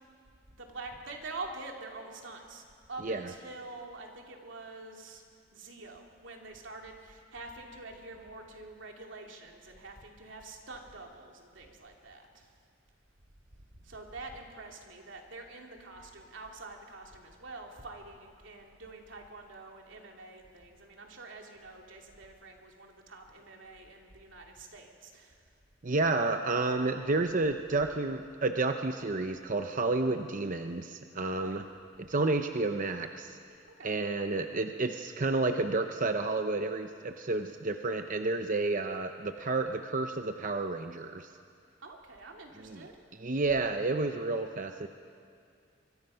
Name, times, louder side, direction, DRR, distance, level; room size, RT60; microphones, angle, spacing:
voice 1, 0.5-5.2 5.5-12.5 13.8-25.4 31.2-31.6 33.8-34.0 41.8-42.9, right 3 dB, 85° right, 1 dB, 2.7 m, -46 dB
voice 2, 25.8-31.6 32.0-33.4 33.8-41.3 42.6-42.9 43.1-44.9, right 3 dB, 45° right, 6 dB, 0.8 m, -30 dB
25.0 x 23.5 x 5.7 m, 2.3 s
head